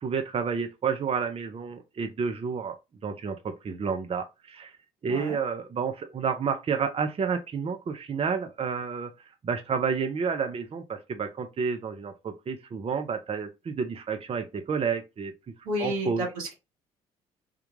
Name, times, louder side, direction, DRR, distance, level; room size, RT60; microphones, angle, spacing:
voice 1, 0.0-2.8 3.0-4.7 5.0-9.1 9.4-15.3 15.8-16.2, right 6 dB, 35° right, 0.6 m, -30 dB
voice 2, 15.6-16.5, equal, 85° right, 1.5 m, -31 dB
3.6 x 2.3 x 3.1 m
hypercardioid pair, 50°, 18 cm